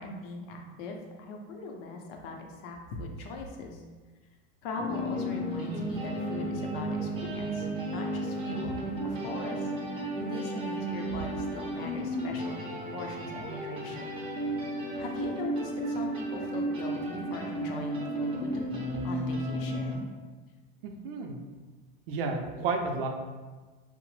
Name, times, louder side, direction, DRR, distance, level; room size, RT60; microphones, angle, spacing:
voice 1, 0.0-2.4 2.6-3.8 4.6-7.7 7.9-14.0 15.0-18.6 19.0-20.1, left 3 dB, 70° left, 2 dB, 0.6 m, -41 dB
sound 1, 4.8-19.9, right 1 dB, 20° right, 0.5 m, -33 dB
voice 2, 20.8-21.4 22.1-23.1, right 4 dB, 70° right, 4 dB, 0.5 m, -31 dB
2.8 x 2.0 x 3.1 m, 1.3 s
supercardioid pair, 145°, 30 cm